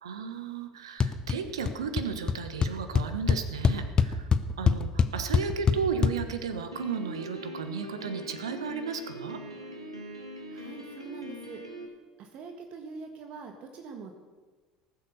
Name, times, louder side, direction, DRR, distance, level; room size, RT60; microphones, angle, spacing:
voice 1, 0.0-4.3 4.6-9.4, right 5 dB, 70° right, 9 dB, 1.2 m, -34 dB
sound 1, 1.0-1.4 1.6-2.0 2.3-2.4 2.6-6.1, left 6 dB, 30° left, 0.8 m, -23 dB
Piano, 6.7-11.9, equal, 85° right, 1.7 m, -42 dB
voice 2, 10.5-11.6 12.2-14.1, right 4 dB, 45° right, 5 dB, 1.4 m, -43 dB
19.0 x 7.9 x 6.6 m, 1.3 s
figure-of-eight pair, 65°, 3 cm